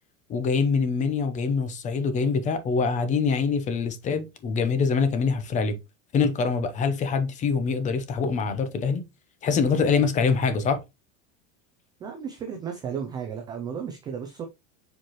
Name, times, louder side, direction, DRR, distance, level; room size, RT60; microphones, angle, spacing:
voice 1, 0.3-5.8 6.1-9.0 9.4-10.8, left 5 dB, 20° left, 0.7 m, -24 dB
voice 2, 12.0-14.4, right 7 dB, 10° right, 0.3 m, -34 dB
7.5 x 4.5 x 3.0 m
supercardioid pair, 170°, 39 cm